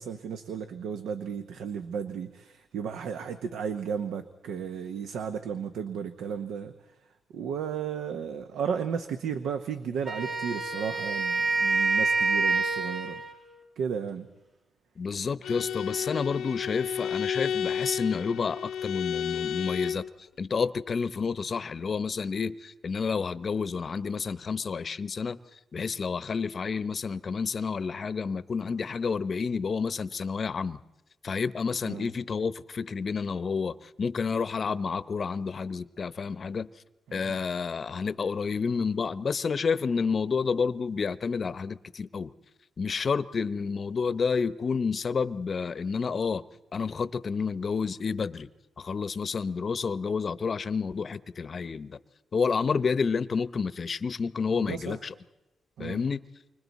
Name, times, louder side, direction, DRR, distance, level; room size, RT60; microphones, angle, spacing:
voice 1, 0.0-6.7 7.3-13.2 13.8-14.3 31.8-32.1 37.1-37.4 54.5-55.0 55.8-56.0, right 7 dB, 85° right, 8 dB, 0.8 m, -34 dB
Wind instrument woodwind instrument, 10.0-13.4, right 3 dB, 55° right, 2.8 m, -27 dB
voice 2, 15.0-20.0 20.4-25.4 25.7-30.8 31.2-36.7 37.1-42.3 42.8-46.4 46.7-48.5 48.8-52.0 52.3-55.1 55.8-56.2, left 5 dB, 50° left, 16 dB, 0.7 m, -30 dB
Bowed string instrument, 15.4-20.1, left 8 dB, 90° left, 0.8 m, -32 dB
29.5 x 25.0 x 4.1 m, 1.0 s
cardioid pair, 80°, 0 cm